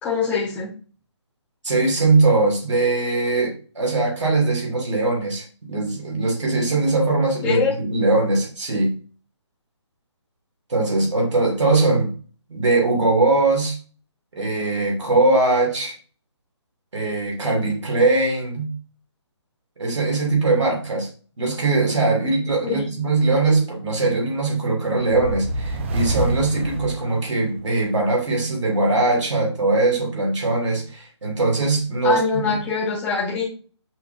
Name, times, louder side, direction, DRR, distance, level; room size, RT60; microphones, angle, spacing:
voice 1, 0.0-0.7 7.4-7.7 22.6-22.9 32.0-33.5, left 5 dB, 10° left, -5 dB, 0.8 m, -23 dB
voice 2, 1.6-8.9 10.7-12.1 12.5-13.8 14.3-16.0 16.9-18.7 19.8-21.1 21.4-32.2, right 3 dB, 85° right, 0 dB, 2.4 m, -21 dB
sound 1, 25.0-27.7, right 2 dB, 25° right, 0.5 m, -27 dB
5.5 x 3.6 x 2.6 m, 0.37 s
hypercardioid pair, 160°, 15 cm